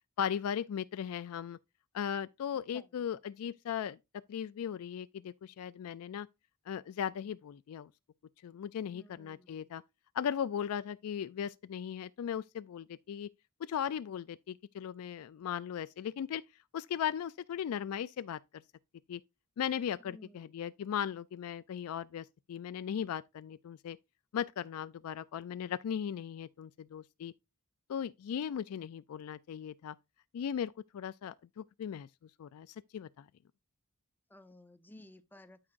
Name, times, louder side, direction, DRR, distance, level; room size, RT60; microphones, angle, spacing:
voice 1, 0.2-1.6 1.9-4.0 4.3-6.3 6.7-7.9 8.4-9.8 10.1-13.3 13.6-16.4 16.7-18.4 19.1-19.2 19.6-24.0 24.3-27.3 27.9-30.0 30.3-32.1 32.4-33.3, left 8 dB, 75° left, 0.3 m, -37 dB
voice 2, 8.9-9.8 20.0-20.6 34.3-35.6, left 1 dB, 10° left, 0.5 m, -56 dB
12.5 x 4.8 x 2.5 m
head